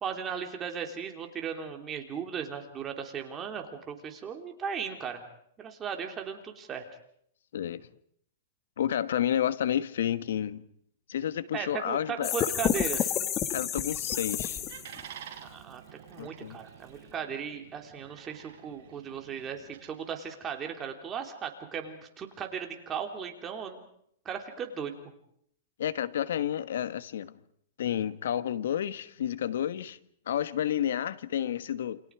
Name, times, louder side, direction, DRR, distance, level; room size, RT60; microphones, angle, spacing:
voice 1, 0.0-5.2 5.6-6.9 11.5-13.1 15.4-15.8 16.1-23.8 24.3-24.9, right 7 dB, 20° right, 3.4 m, -37 dB
voice 2, 7.5-7.9 8.8-10.6 11.1-12.5 13.5-14.6 16.2-16.6 25.8-27.4 27.8-30.0 30.3-32.0, left 10 dB, 80° left, 1.4 m, -30 dB
sound 1, 12.2-15.0, left 10 dB, 30° left, 1.9 m, -30 dB
sound 2, 13.6-19.9, right 9 dB, 60° right, 4.4 m, -50 dB
29.0 x 26.5 x 4.8 m
hypercardioid pair, 145°, 0 cm